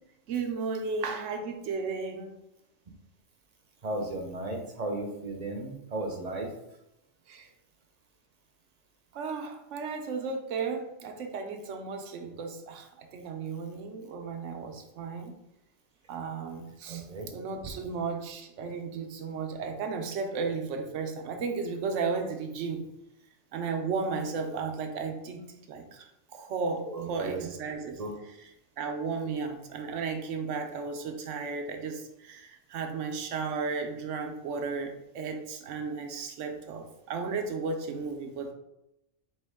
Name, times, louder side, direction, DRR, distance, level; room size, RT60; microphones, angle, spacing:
voice 1, 0.3-2.3 7.3-7.5 9.1-15.3 16.1-22.9 23.5-25.4 25.7-38.5, right 4 dB, 80° right, 4 dB, 1.0 m, -34 dB
voice 2, 3.8-6.5 16.9-17.3 26.9-27.5 28.0-28.1, right 2 dB, 40° right, 2 dB, 0.7 m, -35 dB
4.4 x 3.0 x 3.4 m, 0.87 s
omnidirectional pair, 1.3 m